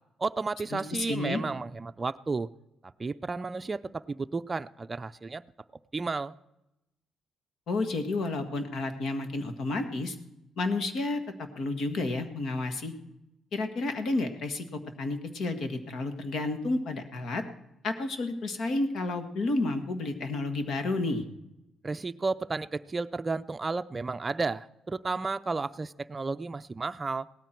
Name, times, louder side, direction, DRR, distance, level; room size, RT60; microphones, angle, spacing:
voice 1, 0.2-2.5 3.0-5.4 5.9-6.4 21.8-27.3, right 3 dB, 30° right, 13 dB, 0.4 m, -32 dB
voice 2, 1.1-1.4 7.7-10.2 10.6-12.9 13.5-17.4 17.8-21.2, left 2 dB, 70° left, 8 dB, 1.7 m, -31 dB
18.0 x 13.0 x 4.5 m, 0.88 s
cardioid pair, 90°, 0 cm